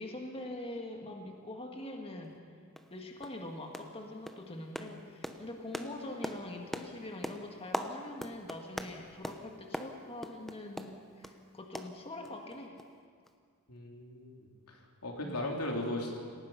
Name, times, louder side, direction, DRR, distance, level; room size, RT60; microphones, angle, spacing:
voice 1, 0.0-2.4 2.9-12.8 15.2-15.4, left 1 dB, 25° left, 2 dB, 1.8 m, -44 dB
sound 1, 2.2-2.3 2.8-2.9 3.2-3.4 3.7-4.0 4.3-11.4 11.7-12.5 12.8-12.9 13.3-13.4, equal, ahead, 0.9 m, -42 dB
voice 2, 13.7-16.2, left 1 dB, 90° left, 0 dB, 3.5 m, -37 dB
28.0 x 18.0 x 5.8 m, 2.1 s
head